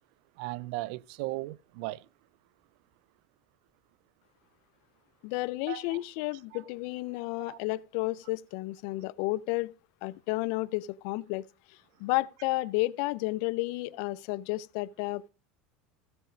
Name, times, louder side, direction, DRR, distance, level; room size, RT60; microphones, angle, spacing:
voice 1, 0.4-2.1 5.7-6.0 6.5-6.6 7.2-7.6, right 19 dB, 75° right, 0.4 m, -37 dB
voice 2, 5.2-9.7 10.0-11.5 12.0-15.3, left 20 dB, 70° left, 0.4 m, -32 dB
15.0 x 5.9 x 5.0 m
supercardioid pair, 120°, 4 cm